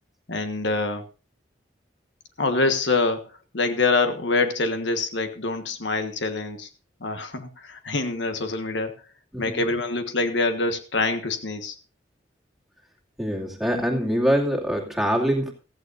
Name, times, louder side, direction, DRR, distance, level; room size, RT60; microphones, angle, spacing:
voice 1, 0.3-1.0 2.4-3.3 3.5-6.7 7.0-8.9 9.4-11.7, left 3 dB, 75° left, 7 dB, 1.5 m, -25 dB
voice 2, 13.2-15.5, equal, ahead, -1 dB, 2.5 m, -24 dB
15.5 x 14.5 x 2.6 m, 0.33 s
head